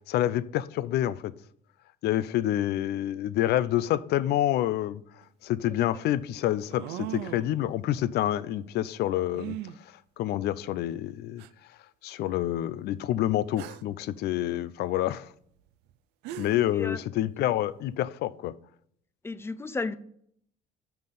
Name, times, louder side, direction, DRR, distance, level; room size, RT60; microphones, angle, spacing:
voice 1, 0.1-1.3 2.0-5.0 5.4-9.6 9.9-11.4 12.0-15.3 16.4-18.5, left 13 dB, 75° left, 0.5 m, -28 dB
sound 1, 5.2-5.3 6.7-7.6 9.3-9.8 10.7-10.8 11.4-11.5 13.6-13.9 15.9-16.0 16.2-16.7, right 13 dB, 90° right, 0.5 m, -38 dB
voice 2, 19.2-19.9, left 3 dB, 15° left, 0.5 m, -33 dB
5.9 x 5.5 x 6.8 m
cardioid pair, 110°, 17 cm